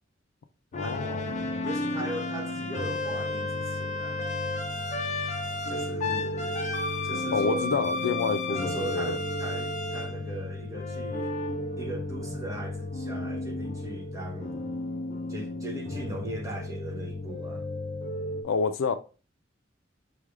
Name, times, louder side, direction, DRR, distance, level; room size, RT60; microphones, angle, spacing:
voice 1, 0.7-1.3 7.3-9.2 18.4-18.9, left 5 dB, 85° left, 0.4 m, -28 dB
sound 1, 0.7-18.4, left 2 dB, 35° left, 0.6 m, -32 dB
voice 2, 1.6-4.3 5.7-6.6 7.0-7.7 8.5-11.4 11.8-14.6 15.3-17.7, right 1 dB, 15° right, 0.9 m, -39 dB
5.4 x 3.3 x 2.4 m
head